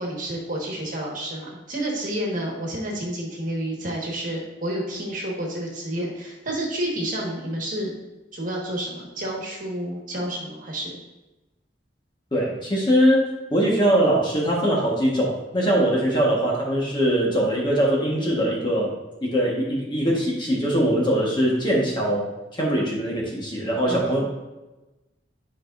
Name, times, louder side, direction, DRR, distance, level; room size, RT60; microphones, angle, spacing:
voice 1, 0.0-7.9 8.3-11.0 23.9-24.2, right 1 dB, 45° right, -2 dB, 1.6 m, -30 dB
voice 2, 12.3-18.9 19.2-24.2, equal, 25° left, -3 dB, 1.4 m, -22 dB
11.0 x 4.9 x 2.6 m, 1.1 s
head